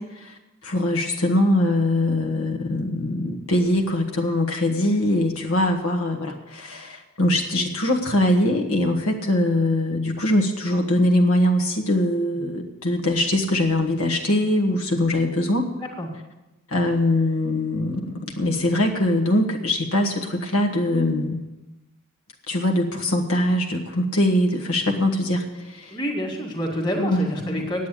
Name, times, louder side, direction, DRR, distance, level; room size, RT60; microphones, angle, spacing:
voice 1, 0.0-15.7 16.7-21.4 22.5-26.0 27.0-27.6, left 1 dB, 80° left, 1 dB, 1.5 m, -22 dB
voice 2, 25.9-27.9, equal, 20° left, 0 dB, 2.1 m, -28 dB
9.3 x 8.7 x 9.8 m, 1.0 s
head